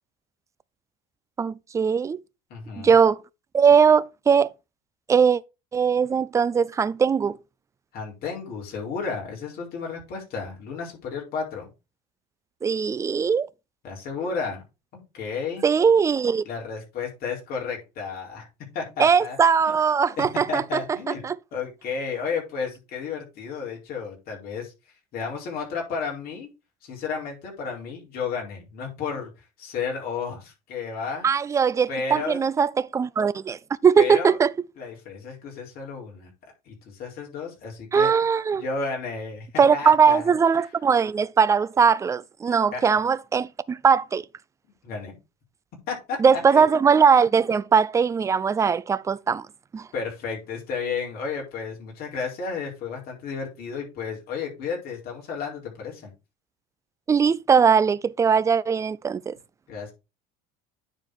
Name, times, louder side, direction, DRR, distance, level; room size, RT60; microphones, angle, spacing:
voice 1, 1.4-2.2 2.8-3.2 3.5-4.5 5.1-5.4 5.7-7.4 12.6-13.5 15.6-16.4 19.0-20.6 21.2-21.3 31.2-34.5 37.9-38.6 39.6-44.2 46.2-49.5 49.7-49.9 57.1-59.3, right 6 dB, 15° right, 0.4 m, -20 dB
voice 2, 2.5-3.0 7.9-11.7 13.8-14.6 14.9-15.6 16.4-18.5 18.7-19.4 20.2-21.2 21.5-26.5 26.8-31.3 31.9-32.4 34.0-34.4 34.8-38.1 38.5-40.3 42.7-42.8 44.8-45.2 45.9-46.7 47.3-47.4 49.9-56.1 59.7-59.9, left 5 dB, 50° left, 4.4 m, -32 dB
9.7 x 4.4 x 4.8 m
cardioid pair, 140°, 19 cm